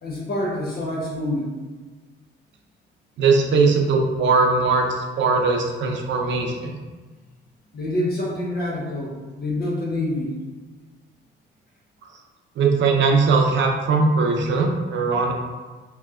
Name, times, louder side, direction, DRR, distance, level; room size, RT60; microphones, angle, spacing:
voice 1, 0.0-1.5 7.7-10.4, left 1 dB, 50° left, -3 dB, 1.1 m, -27 dB
voice 2, 3.2-6.8 12.6-15.3, right 4 dB, 70° right, 2 dB, 0.6 m, -20 dB
3.2 x 2.9 x 3.6 m, 1.3 s
cardioid pair, 90°, 20 cm